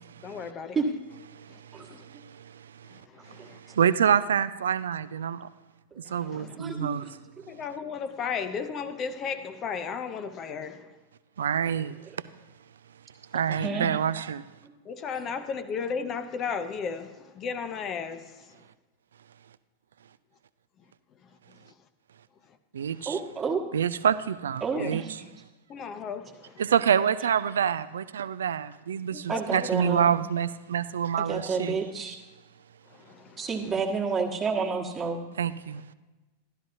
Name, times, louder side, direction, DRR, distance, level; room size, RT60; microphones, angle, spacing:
voice 1, 0.2-0.8 1.5-1.6 1.9-2.0 2.9-3.8 6.0-6.6 7.5-11.0 14.8-18.6 21.2-21.3 21.6-21.7 22.5-22.6 23.0-23.1 24.7-24.9 25.2-25.3 25.7-26.7 29.1-29.7 32.9-33.5, left 6 dB, 30° left, 10 dB, 0.7 m, -35 dB
voice 2, 3.7-5.5 6.1-7.1 11.4-11.9 13.3-14.4 22.7-23.2 23.7-25.0 26.6-31.8 35.4-35.8, right 8 dB, 65° right, 16 dB, 0.4 m, -26 dB
voice 3, 6.4-7.0 7.4-7.5 13.3-13.9 23.0-23.6 24.6-25.0 29.3-30.1 31.3-32.2 33.4-35.2, right 5 dB, 20° right, 2 dB, 1.3 m, -30 dB
13.0 x 11.5 x 2.7 m, 1.1 s
figure-of-eight pair, 90°, 0 cm